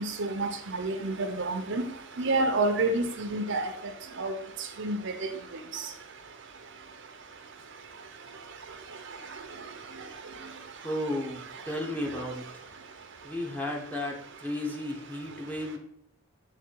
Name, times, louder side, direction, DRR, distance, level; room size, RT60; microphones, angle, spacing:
voice 1, 0.0-1.8 2.2-3.7 4.2-4.3 4.8-5.3, right 2 dB, 65° right, 6 dB, 0.8 m, -28 dB
voice 2, 10.8-12.4 13.2-15.8, left 1 dB, 10° left, 0 dB, 1.1 m, -34 dB
6.9 x 3.4 x 4.6 m, 0.67 s
head